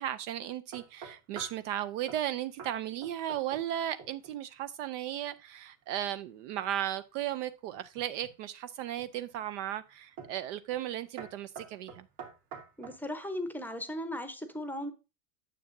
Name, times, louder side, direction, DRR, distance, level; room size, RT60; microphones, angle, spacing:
voice 1, 0.0-12.1, right 11 dB, 50° right, 0.5 m, -35 dB
sound 1, 0.7-1.6 2.1-2.3 2.6-2.8 3.0-3.7 4.0-4.4 7.7-8.4 9.0-9.4 10.2-10.4 10.7-10.9 11.2-13.0, right 6 dB, 65° right, 2.5 m, -46 dB
voice 2, 12.8-14.9, left 1 dB, 5° left, 0.7 m, -37 dB
9.2 x 7.2 x 2.6 m
supercardioid pair, 120°, 49 cm